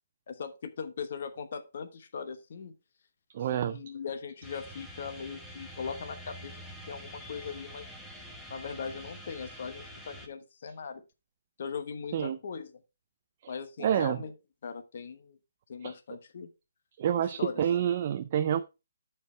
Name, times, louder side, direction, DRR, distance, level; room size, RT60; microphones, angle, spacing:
voice 1, 0.3-2.7 3.5-6.5 6.9-8.0 8.5-11.0 11.6-12.7 13.5-14.3 14.6-15.4 15.7-16.5 17.4-17.6, left 6 dB, 45° left, 1.1 m, -39 dB
voice 2, 3.3-3.8 12.1-12.4 13.4-13.5 13.8-14.2 15.8-15.9 17.0-18.6, right 9 dB, 30° right, 0.4 m, -28 dB
sound 1, 4.4-10.3, equal, ahead, 0.8 m, -46 dB
12.0 x 4.6 x 3.3 m
hypercardioid pair, 170°, 0 cm